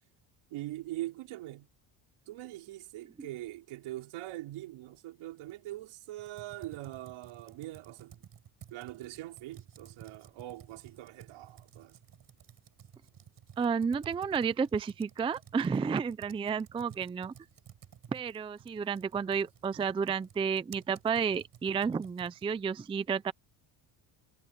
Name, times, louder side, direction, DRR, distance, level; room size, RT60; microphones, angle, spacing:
voice 1, 0.5-1.7 2.3-8.2 8.7-12.0, right 16 dB, 85° right, 5.2 m, -42 dB
Computer keyboard, 6.2-22.6, right 9 dB, 45° right, 6.9 m, -54 dB
voice 2, 13.6-17.3 18.1-23.3, right 6 dB, 10° right, 0.4 m, -31 dB
cardioid pair, 140°, 48 cm